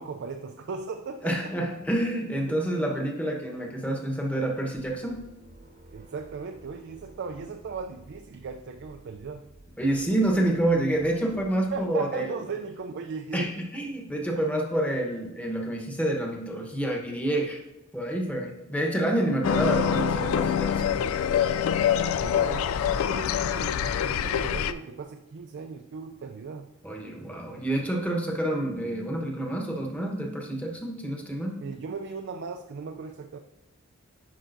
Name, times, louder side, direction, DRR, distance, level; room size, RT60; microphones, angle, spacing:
voice 1, 0.0-1.5 2.5-2.6 5.9-9.5 11.7-13.5 22.2-26.7 31.6-33.4, right 4 dB, 60° right, 5 dB, 0.4 m, -37 dB
voice 2, 1.2-5.2 9.8-12.4 13.3-17.6 17.9-20.8 26.8-31.6, right 1 dB, 5° left, 0 dB, 1.0 m, -28 dB
sound 1, 4.7-12.2, right 1 dB, 40° right, 0.9 m, -53 dB
sound 2, 19.4-24.7, left 8 dB, 90° left, 0.3 m, -25 dB
10.0 x 5.5 x 2.6 m, 0.92 s
head